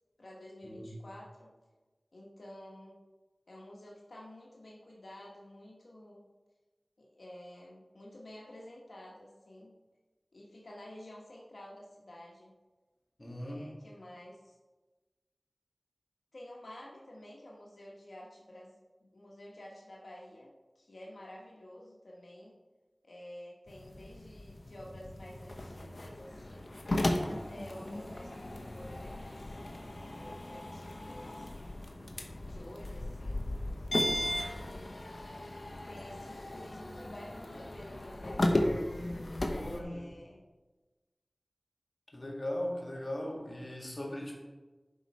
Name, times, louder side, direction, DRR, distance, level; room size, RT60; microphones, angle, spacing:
voice 1, 0.2-1.5 2.1-3.0 3.5-6.2 7.0-9.7 10.3-12.6 13.4-14.5 16.3-22.5 23.0-26.7 27.2-29.6 30.1-31.5 32.1-35.0 35.5-38.9 39.7-40.4, left 1 dB, 85° left, -3 dB, 1.2 m, -51 dB
voice 2, 13.2-13.7 39.5-40.1 42.1-44.4, left 1 dB, 40° left, -1 dB, 1.9 m, -39 dB
sound 1, 23.7-39.8, left 1 dB, 65° left, 0.9 m, -36 dB
Drum, 24.7-38.2, equal, 5° right, 1.7 m, -54 dB
11.0 x 4.8 x 4.2 m, 1.2 s
wide cardioid pair, 40°, 0 cm